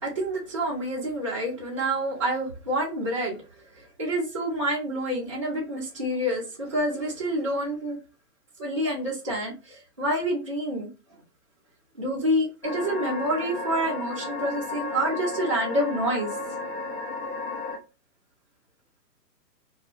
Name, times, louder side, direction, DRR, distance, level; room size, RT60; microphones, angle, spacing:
voice 1, 0.0-8.0 8.6-10.9 11.9-16.3, right 1 dB, 20° right, -6 dB, 0.4 m, -28 dB
sound 1, 12.6-17.8, left 3 dB, 45° left, 0.6 m, -33 dB
2.3 x 2.0 x 2.9 m, 0.30 s
hypercardioid pair, 145°, 48 cm